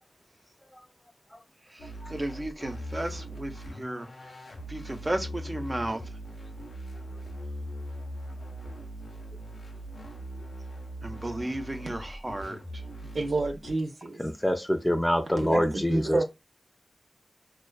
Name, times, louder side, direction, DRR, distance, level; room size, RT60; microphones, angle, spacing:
sound 1, 1.8-13.7, equal, 90° left, 0.7 m, -40 dB
voice 1, 2.1-4.1 4.7-6.0 11.0-12.6, right 1 dB, 30° right, 0.7 m, -33 dB
voice 2, 13.1-14.2 15.4-15.6 15.9-16.2, right 2 dB, 80° right, 0.7 m, -28 dB
voice 3, 14.2-16.2, equal, 15° left, 0.6 m, -26 dB
2.4 x 2.3 x 2.2 m
cardioid pair, 40°, 0 cm